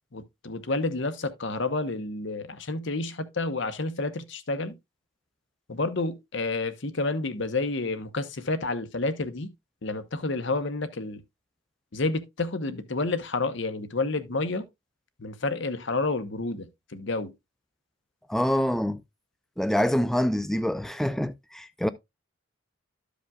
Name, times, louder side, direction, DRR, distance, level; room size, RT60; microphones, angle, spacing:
voice 1, 0.1-4.7 5.7-9.5 9.8-11.2 11.9-14.7 15.2-17.3, left 3 dB, 55° left, 0.9 m, -30 dB
voice 2, 18.3-19.0 19.6-21.9, equal, ahead, 0.3 m, -26 dB
13.5 x 5.1 x 2.3 m
head